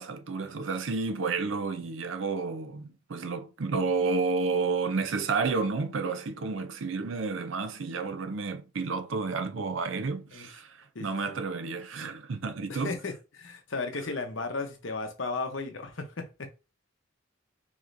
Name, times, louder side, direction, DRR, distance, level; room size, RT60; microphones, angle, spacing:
voice 1, 0.0-13.0, right 4 dB, 70° right, 0.5 m, -31 dB
voice 2, 10.9-11.4 12.7-16.5, left 3 dB, 70° left, 0.9 m, -35 dB
4.8 x 3.0 x 2.6 m
head